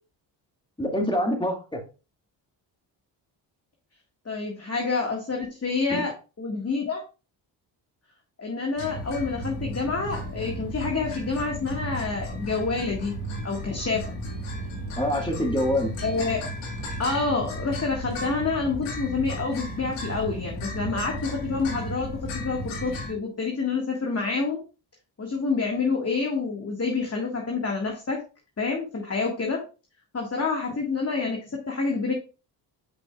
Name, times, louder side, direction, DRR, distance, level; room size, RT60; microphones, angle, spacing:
voice 1, 0.8-1.8 5.9-6.0 15.0-15.9, left 1 dB, 10° left, 2 dB, 2.1 m, -25 dB
voice 2, 4.3-6.1 6.4-7.0 8.4-13.2 13.4-14.2 16.0-16.4 17.0-24.6 25.2-28.2 28.6-29.6 30.1-32.1, left 4 dB, 30° left, 0 dB, 1.8 m, -28 dB
sound 1, 8.8-23.1, equal, 85° left, 2.2 m, -34 dB
9.2 x 5.1 x 2.4 m, 0.32 s
supercardioid pair, 65°, 49 cm